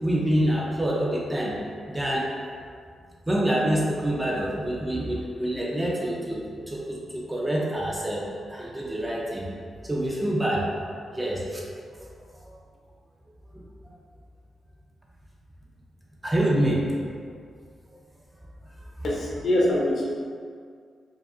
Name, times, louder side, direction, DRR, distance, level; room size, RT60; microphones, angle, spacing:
voice 1, 0.0-1.6 1.9-2.3 3.3-9.5 9.8-10.7 11.1-11.6 12.4-12.5 13.5-13.6 16.2-16.9, right 1 dB, 10° right, -3 dB, 0.5 m, -26 dB
voice 2, 19.0-20.0, left 1 dB, 60° left, -5 dB, 0.9 m, -23 dB
4.7 x 2.5 x 2.5 m, 2.1 s
wide cardioid pair, 130°, 0 cm